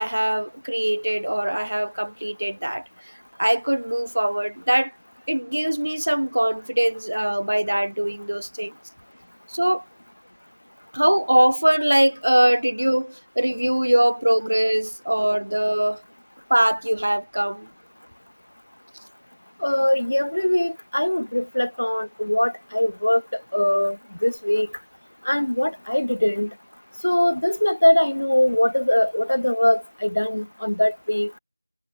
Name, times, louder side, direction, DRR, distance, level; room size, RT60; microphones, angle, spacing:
voice 1, 0.0-2.9 3.4-4.9 5.3-8.7 9.5-9.8 10.9-16.0 16.5-17.7, right 1 dB, 70° right, 4.2 m, -22 dB
voice 2, 19.6-24.7 25.2-26.5 27.0-31.3, left 1 dB, 65° left, 5.5 m, -22 dB
figure-of-eight pair, 180°, 0 cm